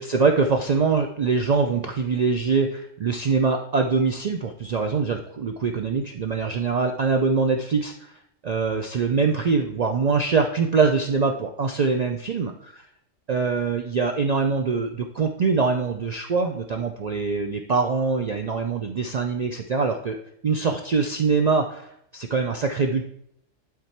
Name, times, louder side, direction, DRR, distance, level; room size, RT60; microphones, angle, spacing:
voice 1, 0.0-7.9 8.4-12.5 13.3-20.2 20.4-21.9 22.1-23.0, right 4 dB, 75° right, 4 dB, 0.3 m, -23 dB
11.0 x 3.7 x 4.3 m, 0.72 s
omnidirectional pair, 1.3 m